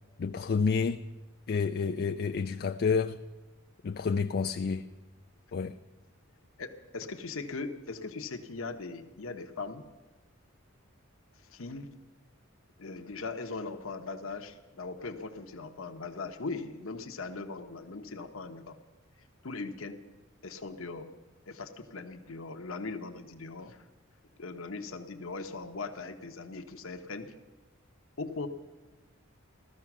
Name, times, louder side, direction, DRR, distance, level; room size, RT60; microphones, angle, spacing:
voice 1, 0.2-1.0 1.5-3.2 3.8-4.9 5.5-5.8, left 5 dB, 50° left, 0.4 m, -29 dB
voice 2, 6.6-9.9 11.5-11.9 12.8-18.8 19.4-20.0 20.4-21.1 21.5-23.8 24.4-27.3 28.2-28.5, left 3 dB, 70° left, 1.0 m, -39 dB
15.5 x 13.5 x 6.1 m
head